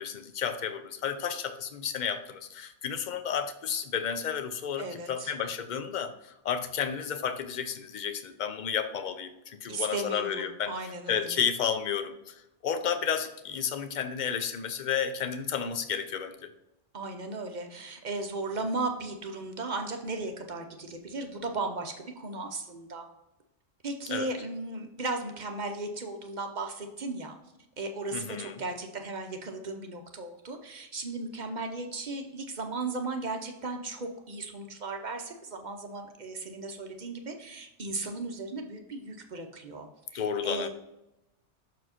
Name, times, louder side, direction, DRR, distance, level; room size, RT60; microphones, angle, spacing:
voice 1, 0.0-10.7 11.1-16.5 24.1-24.3 28.1-28.6 40.1-40.7, left 7 dB, 50° left, 9 dB, 0.6 m, -32 dB
voice 2, 4.8-5.3 9.7-11.4 16.9-23.0 23.8-27.4 27.8-40.7, right 3 dB, 45° right, 5 dB, 0.8 m, -36 dB
6.3 x 4.5 x 4.3 m, 0.91 s
omnidirectional pair, 1.2 m